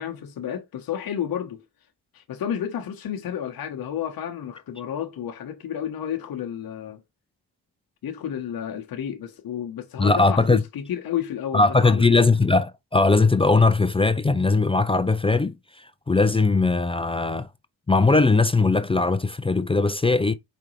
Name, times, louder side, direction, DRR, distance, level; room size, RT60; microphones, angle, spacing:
voice 1, 0.0-1.6 2.1-7.0 8.0-12.1, left 9 dB, 65° left, 0.9 m, -31 dB
voice 2, 10.0-10.6 11.5-17.5 17.9-20.3, left 3 dB, 15° left, 0.4 m, -20 dB
4.9 x 3.4 x 3.0 m
cardioid pair, 70°, 39 cm